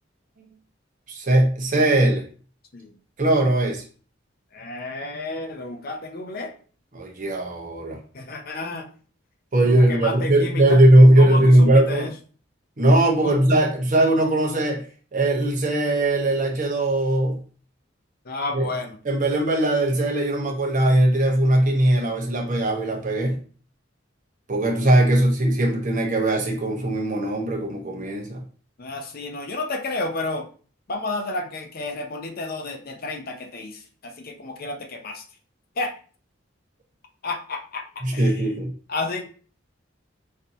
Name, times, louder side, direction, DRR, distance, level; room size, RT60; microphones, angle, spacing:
voice 1, 1.1-2.2 3.2-3.8 6.9-8.0 9.5-12.1 12.8-14.8 15.1-17.4 18.5-18.7 19.0-23.4 24.5-28.4 38.0-38.7, right 1 dB, 45° right, 0 dB, 0.9 m, -19 dB
voice 2, 4.5-6.5 8.1-8.9 9.7-10.8 11.2-12.1 13.2-13.4 18.3-19.0 28.8-30.5 30.9-35.2 35.8-35.9 37.2-37.8 38.1-38.3 38.9-39.2, left 2 dB, 50° left, 5 dB, 0.6 m, -31 dB
5.3 x 2.7 x 2.7 m, 0.41 s
head